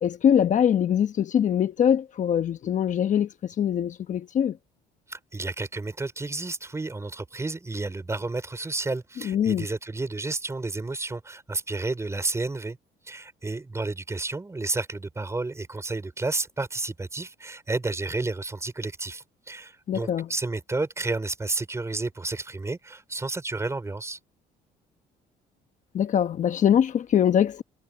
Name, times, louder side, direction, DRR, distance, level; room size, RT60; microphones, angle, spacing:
voice 1, 0.0-4.6 9.2-9.7 19.9-20.3 25.9-27.6, left 9 dB, 45° left, 1.0 m, -23 dB
voice 2, 5.1-12.8 13.0-24.2, right 3 dB, 15° right, 4.7 m, -31 dB
cardioid pair, 110°, 17 cm